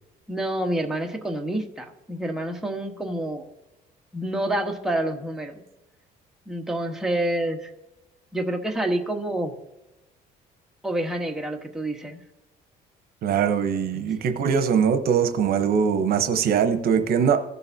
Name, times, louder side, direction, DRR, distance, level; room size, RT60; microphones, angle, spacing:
voice 1, 0.3-3.5 4.1-5.6 6.5-7.7 8.3-9.5 10.8-12.2, right 1 dB, 5° right, 2 dB, 1.2 m, -28 dB
voice 2, 13.2-17.4, right 7 dB, 65° right, 9 dB, 0.9 m, -22 dB
16.0 x 6.8 x 2.7 m, 0.97 s
cardioid pair, 110°, 17 cm